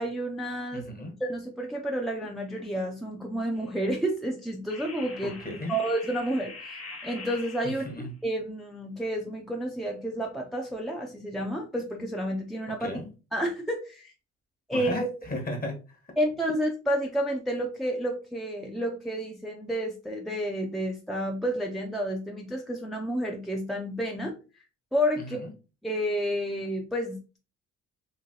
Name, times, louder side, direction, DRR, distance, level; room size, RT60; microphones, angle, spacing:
voice 1, 0.0-0.9 1.2-5.4 5.7-7.9 8.2-12.9 13.3-14.1 14.7-14.9 16.2-24.3 24.9-25.4 25.8-27.4, equal, ahead, 0 dB, 0.5 m, -30 dB
voice 2, 0.7-1.1 5.4-5.8 7.6-8.1 12.8-13.1 14.7-16.0 25.2-25.5, left 1 dB, 30° left, 3 dB, 1.1 m, -35 dB
sound 1, 3.5-3.8 4.7-8.1, left 3 dB, 50° left, 0.9 m, -44 dB
3.1 x 2.8 x 2.7 m, 0.32 s
cardioid pair, 90°, 30 cm